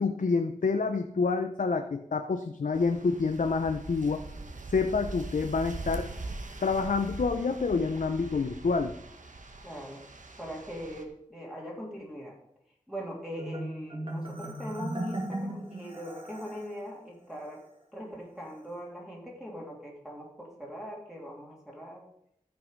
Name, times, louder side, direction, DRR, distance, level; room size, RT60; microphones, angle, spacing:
voice 1, 0.0-4.2 4.7-6.1 6.6-8.9, left 4 dB, 85° left, 6 dB, 0.7 m, -28 dB
sound 1, 2.7-11.0, right 2 dB, 75° right, 1.2 m, -42 dB
voice 2, 9.6-10.0 10.4-12.4 12.9-17.6 17.9-22.1, equal, 5° right, -3 dB, 2.9 m, -41 dB
Marimba xylophone, 13.4-16.7, right 1 dB, 40° right, 2.5 m, -37 dB
14.0 x 5.6 x 5.2 m, 0.73 s
wide cardioid pair, 70°, 13 cm